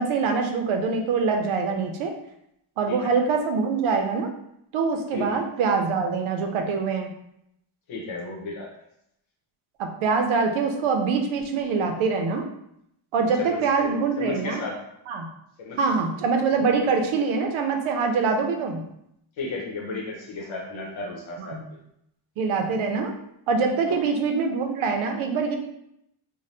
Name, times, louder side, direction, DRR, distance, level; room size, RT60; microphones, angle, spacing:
voice 1, 0.0-2.1 2.8-4.3 4.7-7.1 9.8-12.5 13.1-14.6 15.1-15.3 15.8-18.8 21.4-21.6 22.4-23.1 23.5-25.6, right 4 dB, 75° right, 4 dB, 0.6 m, -24 dB
voice 2, 7.9-8.7 13.4-14.8 15.6-15.8 19.4-21.6 23.9-24.0, left 3 dB, 65° left, -1 dB, 0.9 m, -34 dB
2.7 x 2.2 x 3.2 m, 0.77 s
wide cardioid pair, 160°, 49 cm